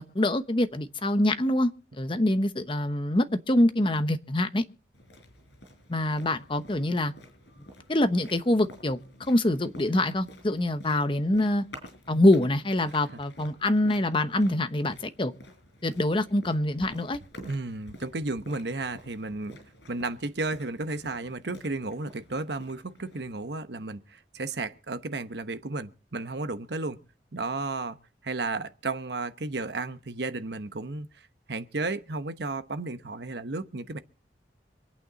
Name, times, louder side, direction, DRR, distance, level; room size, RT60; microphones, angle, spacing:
voice 1, 0.0-1.7 2.0-4.6 5.9-7.1 7.9-9.0 9.3-11.6 12.1-15.3 15.8-17.2, left 1 dB, 30° left, 0.9 m, -25 dB
sound 1, 4.9-23.5, left 1 dB, 75° left, 5.3 m, -50 dB
voice 2, 17.4-19.6 19.9-27.0 27.3-28.0 28.2-31.1 31.5-34.0, right 3 dB, 65° right, 1.0 m, -33 dB
26.0 x 8.9 x 4.0 m
head